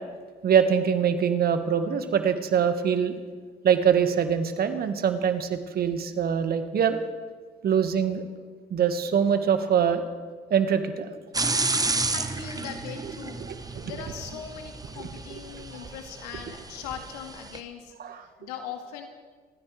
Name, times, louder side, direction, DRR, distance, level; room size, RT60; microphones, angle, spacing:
voice 1, 0.4-3.2 3.6-7.0 7.6-8.2 8.7-10.0 10.5-11.1 13.4-13.9 18.0-18.2, right 7 dB, 50° right, 8 dB, 1.7 m, -24 dB
sound 1, 11.3-17.6, right 3 dB, 20° right, 1.3 m, -31 dB
voice 2, 12.0-13.5 13.8-19.1, left 8 dB, 80° left, 5 dB, 2.0 m, -40 dB
25.5 x 14.5 x 3.4 m, 1.5 s
hypercardioid pair, 50°, 20 cm